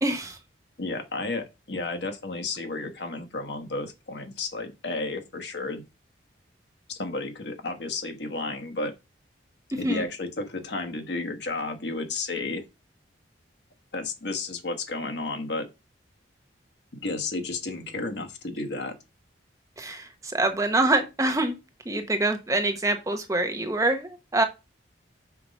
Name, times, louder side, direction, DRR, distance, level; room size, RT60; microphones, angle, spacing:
voice 1, 0.0-0.4 9.8-10.0 19.8-21.6 21.9-24.4, right 2 dB, 15° right, 0.9 m, -25 dB
voice 2, 0.8-5.8 6.9-8.9 9.7-12.6 13.9-15.7 16.9-19.0, left 3 dB, 60° left, 1.3 m, -32 dB
5.9 x 4.7 x 5.2 m
head